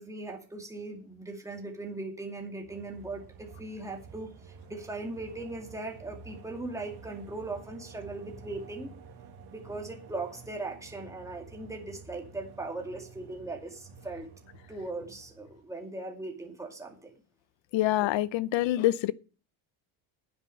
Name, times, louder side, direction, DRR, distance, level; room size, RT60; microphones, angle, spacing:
voice 1, 0.0-8.9 9.5-14.3 14.7-17.1, right 2 dB, 5° right, 2.3 m, -39 dB
sound 1, 2.6-15.7, right 5 dB, 45° right, 1.7 m, -50 dB
voice 2, 17.7-19.1, left 14 dB, 65° left, 0.8 m, -26 dB
9.7 x 8.2 x 6.6 m
cardioid pair, 170°, 49 cm